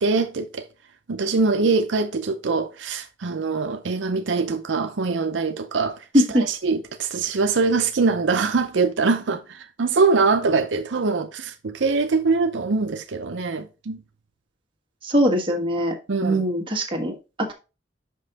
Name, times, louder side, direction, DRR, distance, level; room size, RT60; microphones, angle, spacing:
voice 1, 0.0-0.6 1.1-6.0 6.3-14.0 16.1-16.4, right 4 dB, 85° right, 0.6 m, -23 dB
voice 2, 6.1-6.4 15.0-15.9 16.2-17.5, equal, 30° right, 1.6 m, -21 dB
5.8 x 5.4 x 4.0 m
head